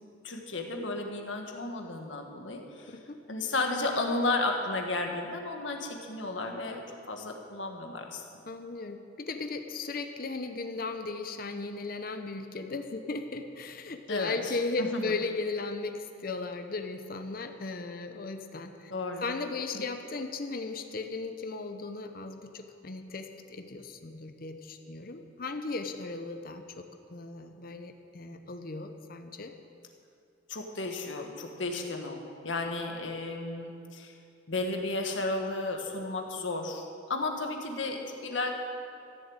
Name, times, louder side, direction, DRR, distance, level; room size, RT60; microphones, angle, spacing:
voice 1, 0.2-3.0 3.3-8.2 14.1-14.5 14.8-15.2 18.9-19.2 19.7-19.8 30.5-34.1 34.5-38.5, left 2 dB, 75° left, 3 dB, 1.6 m, -33 dB
voice 2, 8.5-18.9 19.2-29.5, left 3 dB, 50° left, 7 dB, 0.7 m, -36 dB
14.5 x 7.2 x 8.8 m, 2.5 s
head